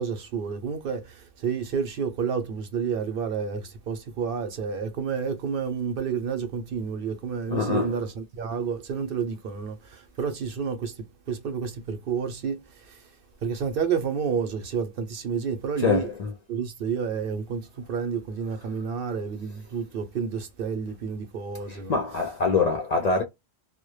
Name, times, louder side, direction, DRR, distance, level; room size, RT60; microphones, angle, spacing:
voice 1, 0.0-13.0 13.4-16.1 16.5-22.0, right 6 dB, 65° right, 0.7 m, -30 dB
voice 2, 7.5-8.0 15.8-16.3 21.7-23.2, left 4 dB, 55° left, 0.4 m, -25 dB
2.1 x 2.1 x 3.0 m
omnidirectional pair, 1.1 m